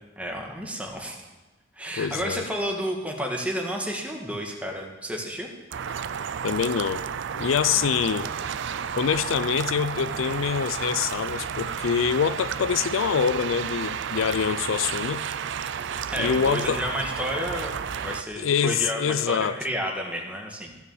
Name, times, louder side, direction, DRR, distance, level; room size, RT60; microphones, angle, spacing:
voice 1, 0.2-1.2 1.8-5.5 7.8-7.9 16.1-20.8, equal, 5° right, 1.6 m, -31 dB
voice 2, 2.0-2.5 6.4-7.0 7.4-8.3 9.0-15.2 16.2-16.8 18.4-19.6, left 7 dB, 75° left, 0.4 m, -25 dB
sound 1, 5.7-18.2, right 7 dB, 60° right, 0.5 m, -32 dB
15.5 x 6.2 x 7.1 m
head